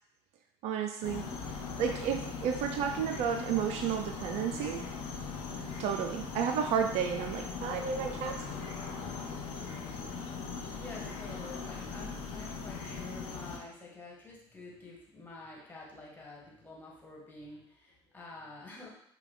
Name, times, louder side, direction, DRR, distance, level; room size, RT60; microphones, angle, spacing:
voice 1, 0.6-1.3 1.8-4.9 5.8-8.4, right 8 dB, 50° right, 5 dB, 0.4 m, -32 dB
sound 1, 1.0-13.6, left 5 dB, 60° left, 0.8 m, -40 dB
voice 2, 10.8-18.9, left 3 dB, 15° left, -4 dB, 1.8 m, -48 dB
5.3 x 2.3 x 4.0 m, 0.69 s
figure-of-eight pair, 50°, 14 cm